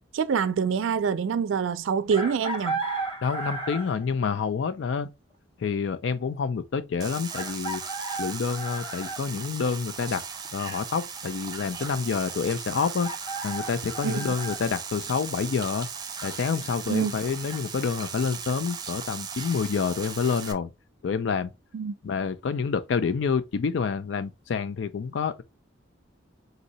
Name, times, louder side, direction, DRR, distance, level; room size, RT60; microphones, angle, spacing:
voice 1, 0.0-2.8 14.0-14.2 16.9-17.1 21.7-21.9, right 6 dB, 90° right, 0.4 m, -26 dB
Chicken rooster, 2.1-4.0 5.7-5.8 7.3-9.2 12.7-14.6, right 3 dB, 30° left, 1.0 m, -34 dB
voice 2, 3.2-5.1 5.6-7.8 8.2-10.2 10.5-13.1 13.4-15.9 16.2-20.7 21.0-21.5 22.0-25.4, left 5 dB, 70° left, 0.4 m, -28 dB
sound 1, 7.0-20.5, right 6 dB, 20° right, 0.6 m, -38 dB
4.0 x 2.7 x 4.0 m
head